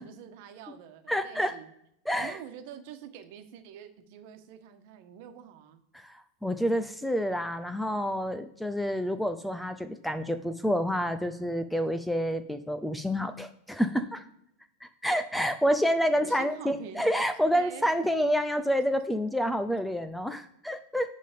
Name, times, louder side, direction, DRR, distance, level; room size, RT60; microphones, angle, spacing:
voice 1, 0.0-1.7 2.1-5.8 16.1-17.0 17.4-17.9 18.5-18.6, right 9 dB, 60° right, 7 dB, 1.3 m, -46 dB
voice 2, 1.1-1.5 2.1-2.4 5.9-14.2 14.8-21.1, equal, ahead, 10 dB, 0.5 m, -28 dB
10.0 x 3.7 x 5.2 m, 0.78 s
supercardioid pair, 130°, 0 cm